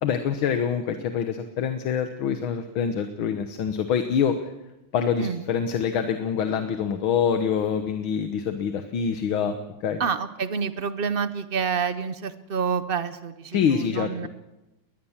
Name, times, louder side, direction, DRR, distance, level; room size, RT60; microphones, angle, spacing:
voice 1, 0.0-4.5 4.9-10.0 13.5-14.3, left 7 dB, 85° left, 8 dB, 2.0 m, -25 dB
voice 2, 10.0-14.3, right 6 dB, 90° right, 12 dB, 0.5 m, -28 dB
21.0 x 20.0 x 7.3 m, 1.0 s
omnidirectional pair, 2.2 m